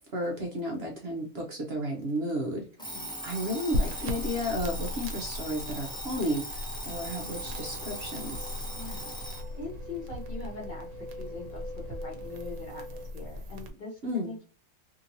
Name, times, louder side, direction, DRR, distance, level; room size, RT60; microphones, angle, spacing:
voice 1, 0.1-2.7 3.2-8.5 14.0-14.3, equal, 55° right, 0 dB, 0.8 m, -33 dB
Alarm, 2.8-9.5, equal, 5° left, 0.6 m, -39 dB
sound 1, 3.7-13.7, left 1 dB, 75° right, 1.1 m, -38 dB
sound 2, 7.0-13.1, equal, 35° right, 0.9 m, -45 dB
voice 2, 8.7-9.1 9.5-14.4, left 3 dB, 35° left, -1 dB, 1.1 m, -42 dB
2.9 x 2.7 x 2.6 m, 0.37 s
omnidirectional pair, 1.5 m